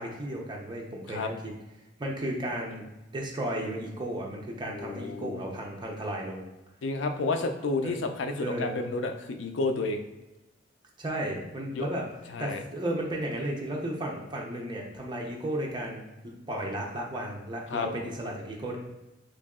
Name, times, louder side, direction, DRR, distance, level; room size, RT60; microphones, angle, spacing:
voice 1, 0.0-1.5 2.0-2.8 3.1-6.5 7.8-7.9 8.4-8.8 11.0-12.0 12.4-18.8, right 1 dB, 25° right, -1 dB, 0.6 m, -34 dB
voice 2, 4.7-5.4 6.8-10.0 11.7-11.9 12.3-12.6 17.7-17.9, left 3 dB, 85° left, 5 dB, 0.4 m, -31 dB
3.0 x 2.6 x 3.5 m, 0.99 s
head